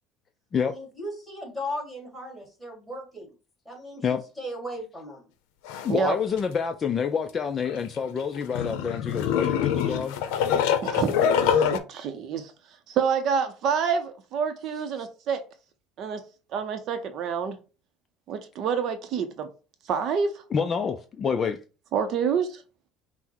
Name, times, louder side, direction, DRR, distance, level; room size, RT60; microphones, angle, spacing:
voice 1, 0.6-3.3 3.7-5.2, left 1 dB, ahead, 1.8 m, -37 dB
sound 1, 5.7-5.9 6.4-6.5 7.7-11.8, left 8 dB, 85° left, 0.6 m, -25 dB
voice 2, 5.8-10.2 15.0-15.1 20.5-21.6, left 6 dB, 30° left, 0.4 m, -27 dB
voice 3, 11.7-12.5 12.9-15.4 16.0-16.2 16.5-17.6 18.3-19.5 19.9-20.4 21.9-22.6, right 6 dB, 50° right, 0.6 m, -27 dB
5.7 x 2.0 x 4.4 m
cardioid pair, 140°, 0 cm